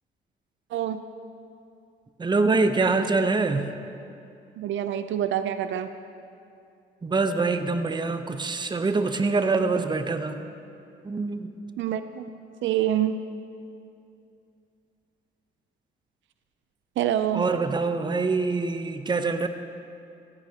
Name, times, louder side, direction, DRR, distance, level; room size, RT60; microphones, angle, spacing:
voice 1, 0.7-1.0 4.6-5.9 11.8-12.2 12.6-13.2 17.0-17.5, right 10 dB, 75° right, 10 dB, 0.6 m, -26 dB
voice 2, 2.2-3.7 7.0-10.5 11.0-11.5 17.3-19.5, right 3 dB, 20° right, 8 dB, 0.8 m, -24 dB
15.5 x 14.5 x 2.9 m, 2.5 s
cardioid pair, 90°, 20 cm